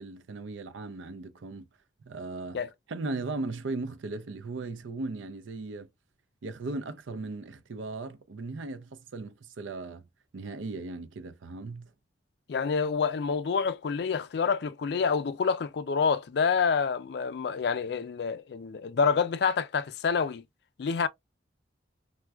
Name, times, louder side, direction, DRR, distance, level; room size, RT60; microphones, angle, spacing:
voice 1, 0.0-1.7 2.1-2.6 2.9-5.9 6.4-10.0 10.3-11.9, right 3 dB, 85° right, 0.5 m, -37 dB
voice 2, 12.5-20.4 20.8-21.1, left 5 dB, 60° left, 0.3 m, -27 dB
4.3 x 2.2 x 2.2 m
head